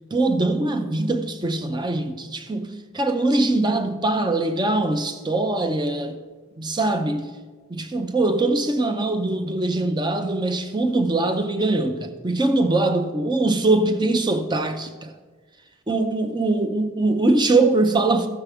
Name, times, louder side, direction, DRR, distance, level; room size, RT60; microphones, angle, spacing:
voice 1, 0.1-6.2 6.6-7.3 7.7-15.1 15.9-18.3, right 2 dB, 20° right, 0.5 m, -22 dB
14.5 x 7.1 x 3.5 m
head